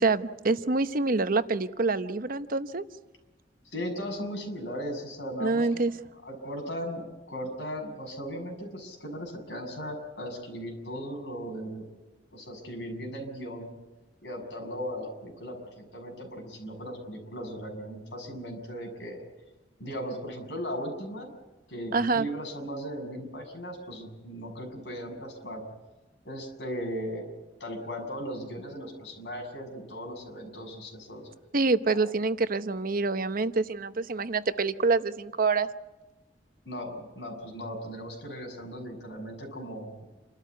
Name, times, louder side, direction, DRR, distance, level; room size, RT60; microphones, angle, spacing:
voice 1, 0.0-2.8 5.4-5.9 21.9-22.3 31.5-35.7, right 3 dB, 50° right, 12 dB, 0.8 m, -26 dB
voice 2, 3.6-5.8 6.2-11.9 12.3-13.7 14.2-15.6 15.9-19.2 19.8-21.3 21.7-25.6 26.2-27.3 27.6-31.3 31.9-32.0 36.6-39.9, equal, 65° left, 2 dB, 6.8 m, -37 dB
28.5 x 13.0 x 9.4 m, 1.2 s
head